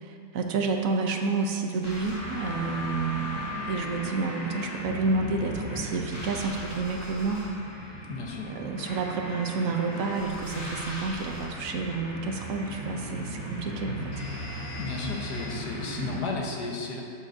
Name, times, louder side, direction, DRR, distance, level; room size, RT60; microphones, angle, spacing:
voice 1, 0.0-7.4 7.7-8.0 8.4-14.1 16.0-16.2, right 4 dB, 65° right, 3 dB, 0.9 m, -30 dB
sound 1, 1.8-16.2, left 1 dB, 45° left, 2.0 m, -37 dB
voice 2, 8.1-8.5 14.8-17.0, left 3 dB, 70° left, -1 dB, 1.6 m, -33 dB
11.5 x 7.6 x 2.6 m, 2.4 s
omnidirectional pair, 1.9 m